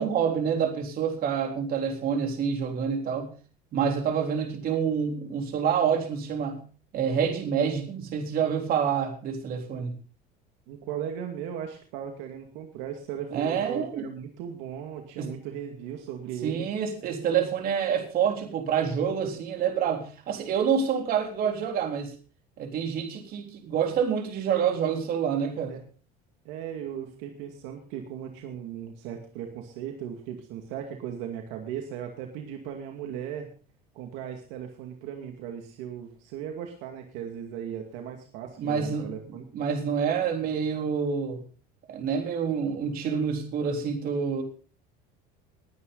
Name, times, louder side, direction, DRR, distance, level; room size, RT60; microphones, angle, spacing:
voice 1, 0.0-3.3 3.7-6.6 6.9-9.9 13.3-14.1 15.2-15.4 16.4-22.1 22.6-25.8 38.6-41.4 41.9-44.4, right 7 dB, 45° right, 3.7 m, -27 dB
voice 2, 10.7-16.7 25.7-25.8 26.4-33.5 33.9-39.5, right 9 dB, 75° right, 2.3 m, -37 dB
20.5 x 9.8 x 4.0 m
cardioid pair, 130°, 20 cm